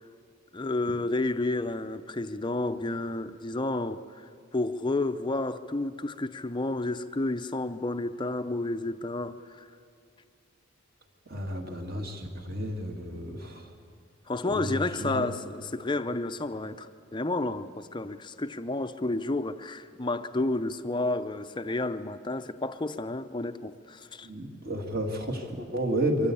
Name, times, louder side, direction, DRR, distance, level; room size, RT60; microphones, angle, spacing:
voice 1, 0.5-9.7 14.3-24.3, left 2 dB, 20° left, 0.5 m, -31 dB
voice 2, 11.3-13.7 14.4-15.3 24.2-26.3, right 1 dB, 45° right, 2.0 m, -32 dB
23.5 x 14.5 x 8.6 m
head